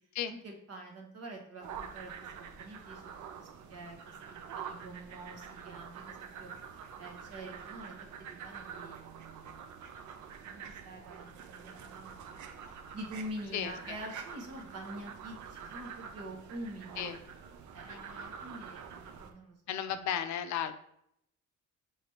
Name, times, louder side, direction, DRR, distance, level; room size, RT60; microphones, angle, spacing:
voice 1, 0.3-3.0 3.4-9.6 10.4-17.1 17.7-20.0, right 1 dB, 55° right, 2 dB, 1.1 m, -47 dB
sound 1, 1.6-19.3, right 7 dB, 75° right, 0.6 m, -46 dB
voice 2, 13.5-14.0 17.0-17.2 17.9-18.3 19.7-20.8, left 9 dB, 70° left, 10 dB, 0.5 m, -35 dB
5.0 x 3.3 x 2.8 m, 0.74 s
cardioid pair, 90°, 30 cm